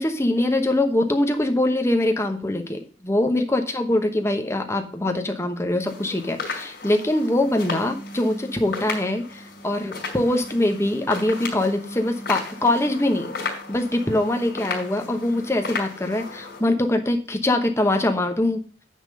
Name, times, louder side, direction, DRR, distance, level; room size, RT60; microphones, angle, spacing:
voice 1, 0.0-13.3 13.7-18.6, left 1 dB, 15° left, 5 dB, 1.0 m, -23 dB
sound 1, 5.8-16.6, left 4 dB, 60° left, 3.4 m, -34 dB
9.6 x 3.7 x 6.6 m, 0.41 s
head